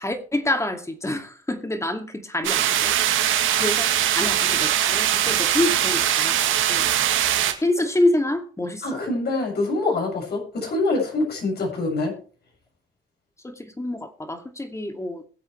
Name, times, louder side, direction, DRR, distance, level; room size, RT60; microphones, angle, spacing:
voice 1, 0.0-2.9 3.6-6.8 7.6-9.0 13.4-15.2, left 1 dB, 15° left, 2.3 m, -27 dB
sound 1, 2.4-7.5, right 11 dB, 85° right, 2.0 m, -21 dB
voice 2, 3.5-3.8 8.8-12.1, left 2 dB, 55° left, 7.0 m, -25 dB
22.0 x 7.9 x 3.3 m
cardioid pair, 90°, 20 cm